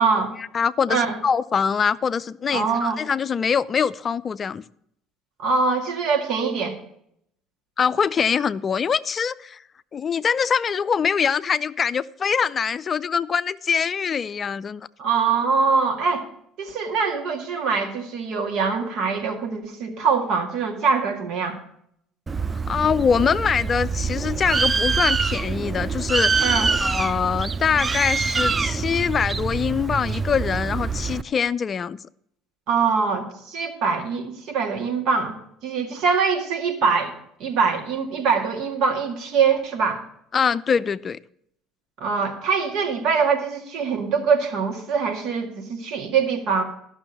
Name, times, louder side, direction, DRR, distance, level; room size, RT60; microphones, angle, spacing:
voice 1, 0.4-4.6 7.8-9.6 9.9-14.9 22.7-26.5 26.8-32.0 40.3-41.2, left 6 dB, 40° left, 0.4 m, -23 dB
voice 2, 2.5-3.0 5.4-6.8 15.0-16.2 16.6-21.6 26.4-26.7 32.7-35.4 35.6-37.1 37.4-40.0 42.0-46.6, right 5 dB, 65° right, 2.0 m, -23 dB
Bird, 22.3-31.2, right 4 dB, 25° right, 0.5 m, -25 dB
12.5 x 6.2 x 6.9 m
hypercardioid pair, 65°, 0 cm